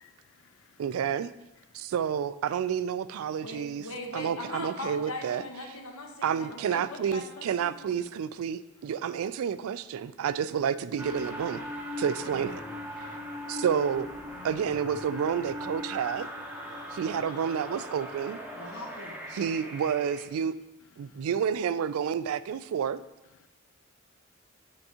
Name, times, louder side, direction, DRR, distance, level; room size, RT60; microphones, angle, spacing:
voice 1, 0.0-0.8 1.7-1.9 13.0-13.2 13.5-13.6 16.7-17.3 18.7-18.8 21.0-21.2 23.4-23.5, left 7 dB, 65° left, 8 dB, 0.3 m, -59 dB
voice 2, 0.8-1.3 1.7-3.9 4.1-5.4 6.2-11.6 12.0-12.6 13.5-14.1 14.4-16.3 16.9-18.4 19.3-20.5 21.0-23.0, right 8 dB, 80° right, 15 dB, 0.3 m, -30 dB
voice 3, 3.4-8.0 18.5-19.2, left 2 dB, 85° left, 2 dB, 1.0 m, -40 dB
sound 1, 11.0-20.3, left 1 dB, 10° right, 0.6 m, -39 dB
7.9 x 4.6 x 2.8 m, 1.0 s
head